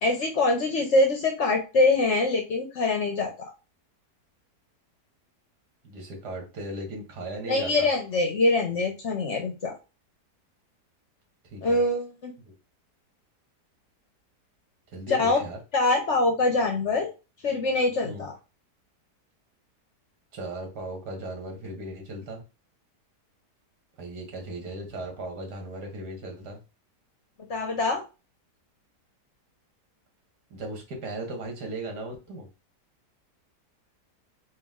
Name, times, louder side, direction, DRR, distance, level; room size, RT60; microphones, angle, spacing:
voice 1, 0.0-3.3 7.4-9.7 11.6-12.3 15.1-15.4 15.7-17.1 17.4-18.3 27.5-28.0, left 2 dB, 55° left, 3 dB, 0.9 m, -24 dB
voice 2, 5.8-7.9 11.5-11.8 12.4-12.5 14.9-15.6 18.0-18.3 20.3-22.4 24.0-26.6 30.5-32.5, right 2 dB, 70° right, 2 dB, 2.0 m, -37 dB
4.3 x 2.6 x 3.6 m, 0.30 s
omnidirectional pair, 1.8 m